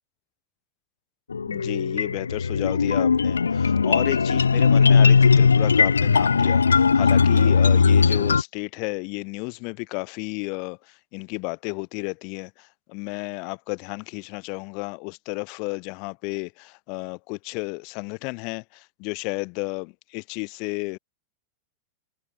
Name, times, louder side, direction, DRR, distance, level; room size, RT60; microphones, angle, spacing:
sound 1, 1.3-8.4, left 5 dB, 75° left, 0.5 m, -18 dB
voice 1, 1.5-21.0, left 34 dB, 45° left, 6.1 m, -32 dB
figure-of-eight pair, 90°, 0 cm